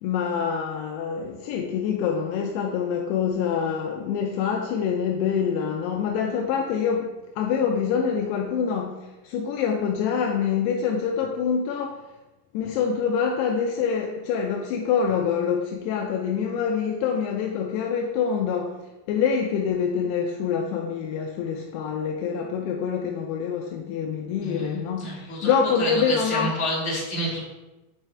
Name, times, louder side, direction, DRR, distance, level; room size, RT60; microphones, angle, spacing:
voice 1, 0.0-12.0 12.5-26.5, left 7 dB, 85° left, 1 dB, 2.6 m, -26 dB
voice 2, 24.4-25.5 25.8-27.5, equal, 15° left, -8 dB, 1.2 m, -29 dB
9.0 x 4.8 x 3.3 m, 1.1 s
omnidirectional pair, 4.7 m